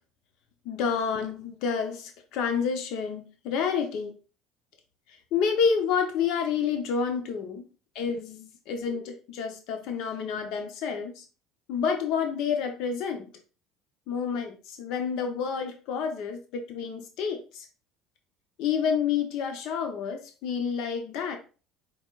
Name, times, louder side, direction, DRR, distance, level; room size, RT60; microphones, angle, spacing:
voice 1, 0.7-4.1 5.3-7.6 7.9-11.2 11.7-13.3 14.1-17.7 18.6-21.4, left 6 dB, 70° left, 5 dB, 0.9 m, -29 dB
4.6 x 4.5 x 2.5 m, 0.35 s
supercardioid pair, 115°, 0 cm